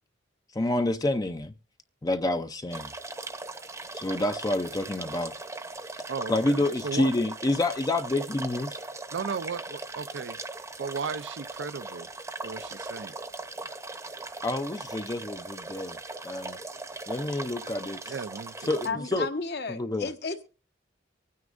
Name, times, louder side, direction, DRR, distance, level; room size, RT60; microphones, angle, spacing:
voice 1, 0.5-1.5 2.0-2.9 3.9-5.3 6.3-8.8 14.4-16.6 17.1-18.1 18.6-19.3 19.7-20.1, left 2 dB, 20° left, 0.5 m, -28 dB
sound 1, 2.7-18.9, right 2 dB, 15° right, 0.8 m, -39 dB
voice 2, 6.1-7.1 9.1-10.4 10.8-12.1 12.4-13.1 18.1-19.2, right 5 dB, 70° right, 0.5 m, -36 dB
voice 3, 18.8-20.4, left 4 dB, 60° left, 1.2 m, -33 dB
24.5 x 9.5 x 2.5 m
head